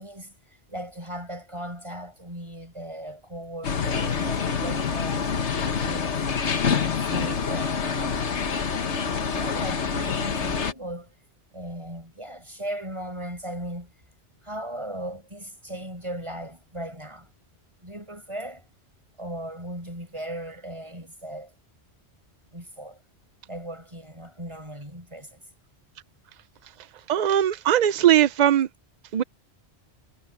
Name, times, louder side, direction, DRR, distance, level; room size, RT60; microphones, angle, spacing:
voice 1, 0.0-6.2 6.7-8.3 9.3-11.1 11.5-13.9 14.4-17.3 17.8-18.6 19.2-21.5 22.5-23.0 23.5-25.4, right 1 dB, 25° right, 7.6 m, -37 dB
sound 1, 3.6-10.7, left 6 dB, 75° left, 1.6 m, -26 dB
voice 2, 27.1-28.7 29.1-29.2, right 11 dB, 60° right, 0.4 m, -19 dB
omnidirectional pair, 1.2 m